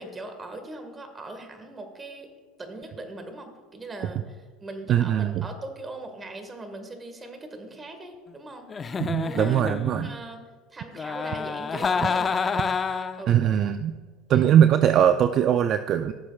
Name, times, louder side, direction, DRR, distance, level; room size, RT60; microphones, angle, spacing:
voice 1, 0.0-2.3 2.6-9.6 10.0-10.4 10.7-12.4 13.2-13.4 14.3-14.5, right 2 dB, 20° right, 5 dB, 1.6 m, -40 dB
voice 2, 4.9-5.4 9.0-10.1 13.3-13.9 14.3-16.1, right 9 dB, 50° right, 10 dB, 0.3 m, -21 dB
Giggle, 8.7-10.2 10.9-13.3, left 5 dB, 25° left, 0.5 m, -28 dB
15.5 x 7.2 x 2.4 m, 1.4 s
supercardioid pair, 100°, 0 cm